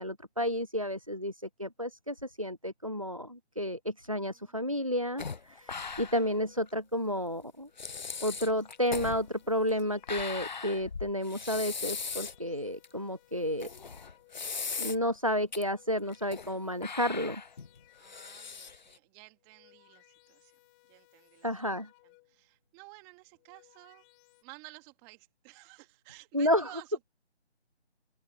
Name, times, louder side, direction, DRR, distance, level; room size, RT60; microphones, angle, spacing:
voice 1, 0.0-7.7 8.2-13.7 14.8-17.4 21.4-21.9 26.3-26.7, equal, 30° right, 0.4 m, -31 dB
voice 2, 4.1-4.8 18.0-21.5 22.0-24.1 24.4-27.0, right 28 dB, 10° right, 2.6 m, -54 dB
sound 1, 5.2-6.4 6.7-6.8 7.4-7.5 7.8-12.4 12.8-12.9 13.6-15.2 15.5-15.6 16.1-16.5 16.8-19.0, left 5 dB, 40° left, 1.2 m, -39 dB
sound 2, 5.6-6.9 7.6-10.8 11.5-14.7 15.4-18.6 19.3-22.5 23.2-24.4, left 25 dB, 10° left, 1.8 m, -64 dB
open air
figure-of-eight pair, 160°, 34 cm